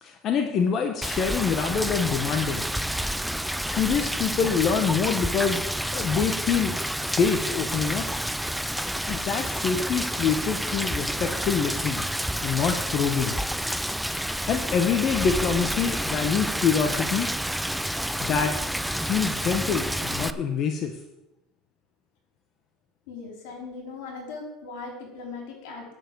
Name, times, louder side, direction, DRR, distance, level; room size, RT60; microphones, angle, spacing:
voice 1, 0.0-2.6 3.7-8.1 9.1-12.0 12.4-13.3 14.5-17.3 18.2-18.5 19.0-20.9, left 6 dB, 45° left, 5 dB, 1.2 m, -26 dB
Rain, 1.0-20.3, equal, ahead, 0.5 m, -29 dB
voice 2, 23.1-25.9, left 4 dB, 80° left, -1 dB, 4.6 m, -39 dB
9.4 x 6.8 x 8.0 m, 0.93 s
supercardioid pair, 120°, 0 cm